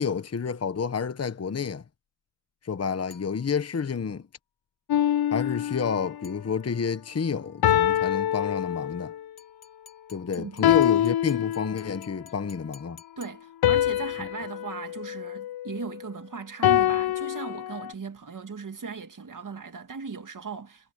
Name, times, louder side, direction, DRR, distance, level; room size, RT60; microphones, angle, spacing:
voice 1, 0.0-1.8 2.6-4.3 5.3-9.1 10.1-13.0 14.2-14.3, left 6 dB, 30° left, 1.0 m, -29 dB
sound 1, 3.1-3.9 6.2-7.0 9.4-14.0, left 8 dB, 75° left, 2.8 m, -54 dB
sound 2, 4.9-6.2 7.6-9.2 10.6-12.1 13.6-16.0 16.6-17.9, left 11 dB, 50° left, 0.5 m, -25 dB
voice 2, 10.4-10.7 13.2-20.9, right 5 dB, 40° right, 2.2 m, -38 dB
wide cardioid pair, 105°, 48 cm